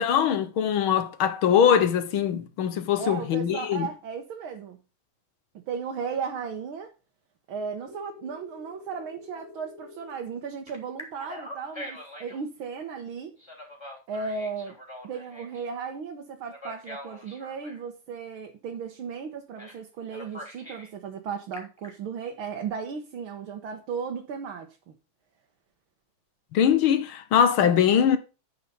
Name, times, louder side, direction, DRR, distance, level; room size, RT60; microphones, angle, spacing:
voice 1, 0.0-3.9 26.5-28.2, left 8 dB, 85° left, 1.9 m, -22 dB
voice 2, 3.0-4.8 5.7-6.9 7.5-13.3 14.1-14.8 15.0-24.9, right 6 dB, 85° right, 2.1 m, -35 dB
Telephone, 7.9-10.1 10.7-12.4 13.4-15.6 16.5-17.8 19.6-19.8 20.1-20.9 21.3-21.9, left 1 dB, 10° left, 3.5 m, -43 dB
10.0 x 5.7 x 5.5 m
omnidirectional pair, 2.2 m